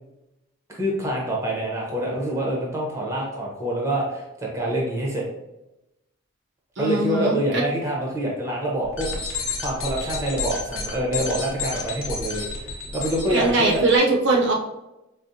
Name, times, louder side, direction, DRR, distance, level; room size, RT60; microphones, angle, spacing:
voice 1, 0.7-5.2 6.8-9.1 9.6-13.8, right 1 dB, 15° right, -3 dB, 0.7 m, -26 dB
voice 2, 6.8-7.6 13.3-14.5, right 2 dB, 60° right, -1 dB, 0.6 m, -21 dB
sound 1, 8.8-13.9, left 4 dB, 80° left, 0.8 m, -31 dB
4.8 x 2.1 x 2.6 m, 0.93 s
head